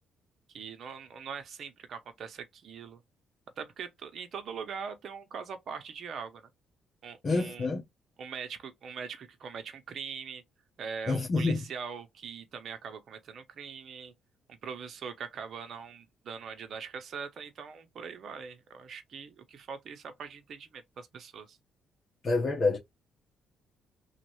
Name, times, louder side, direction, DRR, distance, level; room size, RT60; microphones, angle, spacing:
voice 1, 0.5-3.0 3.6-6.5 7.0-7.7 8.2-10.4 10.8-14.1 14.5-21.6, right 6 dB, 60° right, 0.7 m, -42 dB
voice 2, 7.2-7.8 11.1-11.6 22.2-22.8, left 3 dB, 45° left, 1.0 m, -27 dB
3.1 x 2.4 x 3.0 m
cardioid pair, 90°, 0 cm